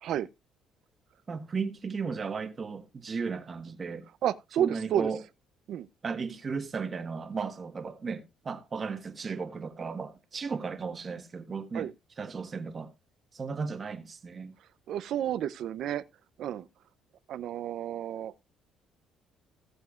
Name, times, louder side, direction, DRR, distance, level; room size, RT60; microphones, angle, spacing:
voice 1, 1.3-4.1 4.6-5.2 6.0-11.9 12.2-12.9 13.3-14.5, right 5 dB, 30° right, 1.5 m, -35 dB
voice 2, 4.2-5.1 5.7-5.9 11.7-11.9 14.9-16.0 16.4-16.7 17.3-18.3, right 10 dB, 65° right, 0.6 m, -31 dB
17.5 x 7.2 x 2.5 m
cardioid pair, 135°, 0 cm